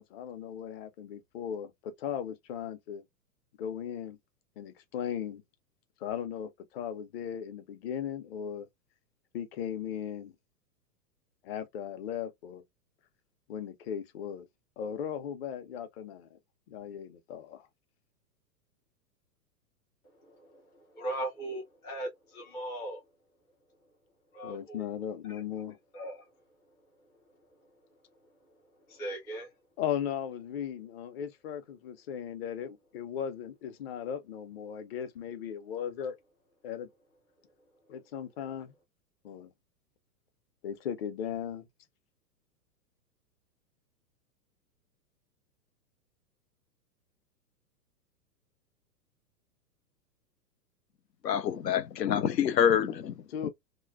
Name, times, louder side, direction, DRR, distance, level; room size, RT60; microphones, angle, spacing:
voice 1, 0.0-3.0 3.6-4.2 4.6-5.4 6.0-8.7 9.3-10.3 11.4-12.6 13.5-14.5 14.8-16.4 16.7-17.7 24.4-25.8 29.8-36.1 36.6-36.9 37.9-38.7 39.2-39.5 40.6-41.7 53.3-53.5, left 9 dB, 40° left, 0.7 m, -37 dB
voice 2, 20.2-23.0 24.3-24.9 25.3-25.4 25.9-26.3 28.9-29.5, right 1 dB, 10° left, 0.4 m, -39 dB
voice 3, 51.2-53.1 53.4-53.5, left 9 dB, 85° left, 0.6 m, -26 dB
3.1 x 2.2 x 2.3 m
figure-of-eight pair, 105°, 49 cm